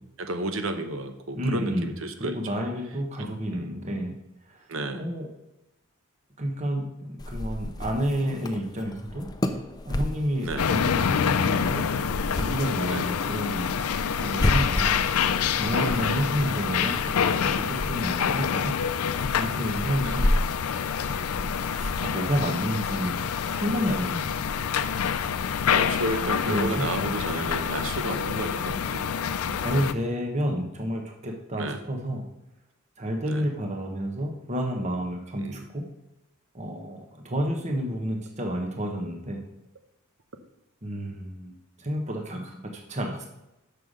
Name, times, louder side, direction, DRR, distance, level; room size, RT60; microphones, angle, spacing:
voice 1, 0.0-2.4 3.2-3.8 4.7-5.0 10.4-10.7 12.9-13.0 14.2-14.5 15.7-16.6 17.4-17.6 18.2-18.5 20.0-20.2 24.2-24.3 25.6-29.1 29.4-29.6 31.6-31.8 33.2-33.5 35.4-35.6, right 2 dB, 65° right, 8 dB, 0.9 m, -33 dB
voice 2, 1.3-1.9 2.2-4.2 4.5-4.6 4.9-5.3 6.4-9.3 9.8-11.9 12.4-13.8 14.2-14.9 15.5-18.8 19.3-20.3 21.7-23.2 23.5-24.4 26.4-26.8 29.3-32.2 33.0-35.8 36.5-39.4 40.8-43.3, equal, 30° right, 2 dB, 1.1 m, -30 dB
sound 1, 7.2-22.4, left 1 dB, 20° left, 0.5 m, -33 dB
sound 2, 10.6-29.9, left 7 dB, 85° left, 0.5 m, -27 dB
6.8 x 5.7 x 6.4 m, 0.91 s
head